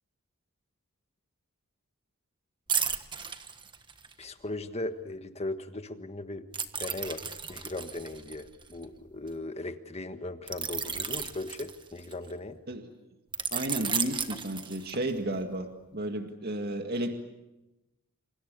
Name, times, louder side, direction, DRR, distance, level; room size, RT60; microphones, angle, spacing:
sound 1, 2.7-4.2 6.5-9.3 10.5-12.3 13.3-15.2 15.6-15.8, right 6 dB, 20° right, 1.4 m, -34 dB
voice 1, 4.2-6.4 6.8-12.6, left 2 dB, 30° left, 9 dB, 1.5 m, -38 dB
voice 2, 13.5-17.1, right 1 dB, 45° right, 5 dB, 2.0 m, -33 dB
28.5 x 28.0 x 6.9 m, 0.99 s
head